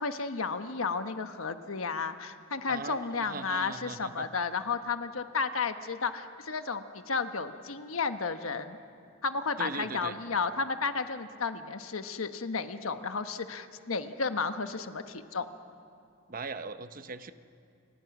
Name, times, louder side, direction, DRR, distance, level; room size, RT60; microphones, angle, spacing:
voice 1, 0.0-8.8 9.2-15.5, left 4 dB, 80° left, 8 dB, 1.2 m, -33 dB
voice 2, 2.7-4.3 9.6-10.1 16.3-17.3, right 4 dB, 40° right, 11 dB, 0.8 m, -39 dB
29.5 x 25.0 x 6.1 m, 2.5 s
head